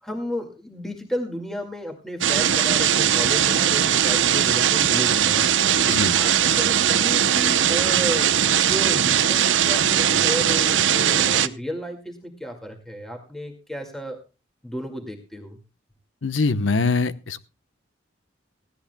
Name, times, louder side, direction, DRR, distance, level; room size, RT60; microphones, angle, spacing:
voice 1, 0.0-5.5 5.9-8.3 8.6-14.2 14.6-15.6, equal, ahead, 3 dB, 2.0 m, -33 dB
sound 1, 2.2-11.5, right 9 dB, 85° right, 0.8 m, -20 dB
voice 2, 5.8-6.1 16.2-17.4, left 3 dB, 90° left, 13 dB, 0.9 m, -23 dB
19.0 x 16.0 x 2.2 m, 0.30 s
head